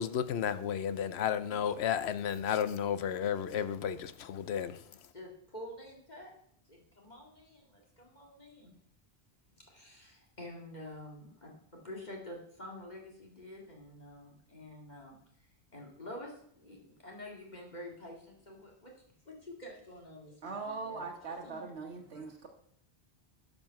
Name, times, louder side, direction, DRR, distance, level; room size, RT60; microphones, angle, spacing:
voice 1, 0.0-5.0, left 8 dB, 80° left, 0.9 m, -33 dB
voice 2, 5.1-6.3 6.7-8.7 9.6-18.9 19.2-21.1 21.4-21.7 22.0-22.3, left 1 dB, 40° left, 2.3 m, -48 dB
voice 3, 20.4-22.5, right 4 dB, 90° right, 1.4 m, -41 dB
12.0 x 5.3 x 5.8 m
omnidirectional pair, 1.1 m